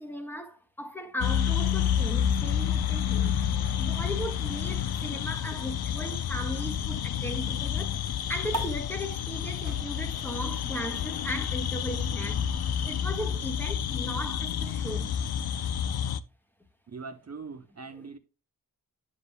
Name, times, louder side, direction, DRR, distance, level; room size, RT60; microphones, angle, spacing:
voice 1, 0.0-3.4 3.8-12.5 12.8-15.2, equal, 5° left, 1.5 m, -37 dB
sound 1, 1.2-16.2, left 9 dB, 85° left, 0.6 m, -29 dB
sound 2, 8.5-15.3, right 2 dB, 60° right, 1.9 m, -44 dB
voice 2, 16.9-18.2, right 4 dB, 45° right, 0.7 m, -41 dB
9.9 x 8.3 x 2.2 m
wide cardioid pair, 135°, 37 cm